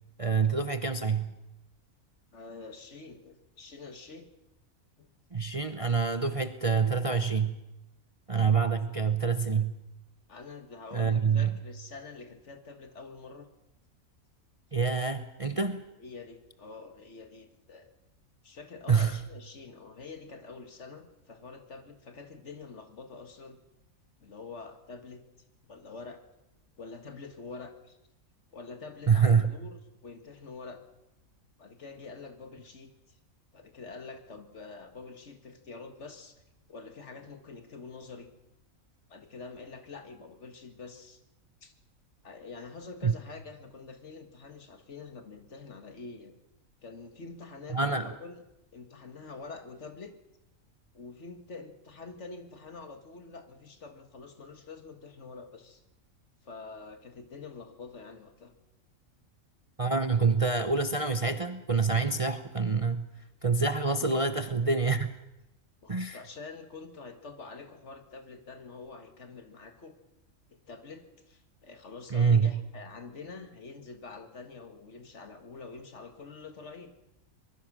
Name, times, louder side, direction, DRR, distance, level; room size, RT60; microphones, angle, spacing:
voice 1, 0.2-1.3 5.3-7.5 8.3-9.7 10.9-11.6 14.7-15.8 18.9-19.2 29.1-29.5 43.0-43.1 47.7-48.1 59.8-63.1 63.4-65.1 65.9-66.2 72.1-72.5, right 5 dB, 30° right, 9 dB, 0.8 m, -26 dB
voice 2, 2.3-4.3 5.0-5.1 8.8-9.1 10.3-13.5 16.0-17.9 18.4-23.6 24.2-25.2 25.6-26.2 26.8-28.0 28.5-30.8 31.6-33.2 33.5-36.4 36.7-38.3 39.1-41.2 41.6-41.7 42.2-46.3 46.8-48.4 48.7-50.2 50.9-55.8 56.4-58.5 64.0-64.2 65.8-69.9 70.5-76.9, left 4 dB, 55° left, 7 dB, 2.0 m, -46 dB
24.0 x 21.0 x 6.2 m, 0.93 s
omnidirectional pair, 1.5 m